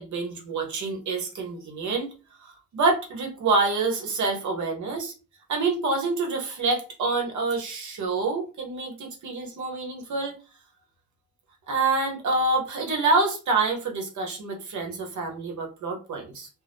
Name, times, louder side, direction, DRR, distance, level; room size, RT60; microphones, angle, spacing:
voice 1, 0.0-2.1 2.4-5.1 5.5-10.4 11.7-16.5, right 3 dB, 80° right, 2 dB, 1.0 m, -27 dB
2.6 x 2.1 x 3.4 m, 0.33 s
supercardioid pair, 50°, 29 cm